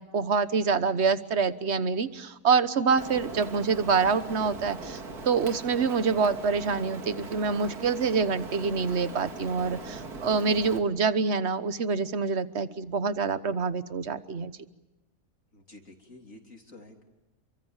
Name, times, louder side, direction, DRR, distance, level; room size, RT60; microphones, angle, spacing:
voice 1, 0.0-14.5, right 5 dB, 45° right, 13 dB, 1.3 m, -26 dB
Rain, 3.0-10.8, right 3 dB, 65° right, 2.8 m, -40 dB
voice 2, 15.5-17.0, left 2 dB, 50° left, 3 dB, 3.5 m, -50 dB
28.5 x 24.0 x 7.3 m, 1.0 s
omnidirectional pair, 1.7 m